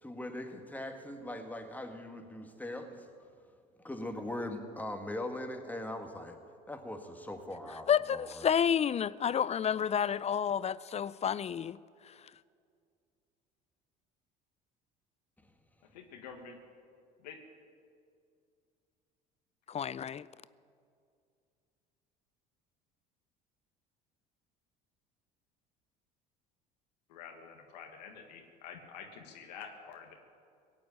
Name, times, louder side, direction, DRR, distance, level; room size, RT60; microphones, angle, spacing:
voice 1, 0.0-3.1 3.8-6.4 6.7-8.5, left 1 dB, 10° left, 1.9 m, -40 dB
voice 2, 7.9-11.8 12.1-12.2 19.7-20.3, left 8 dB, 30° left, 0.4 m, -30 dB
voice 3, 15.9-16.6 17.2-17.4 27.1-30.1, left 6 dB, 90° left, 1.6 m, -48 dB
17.5 x 8.5 x 8.9 m
hypercardioid pair, 75°, 21 cm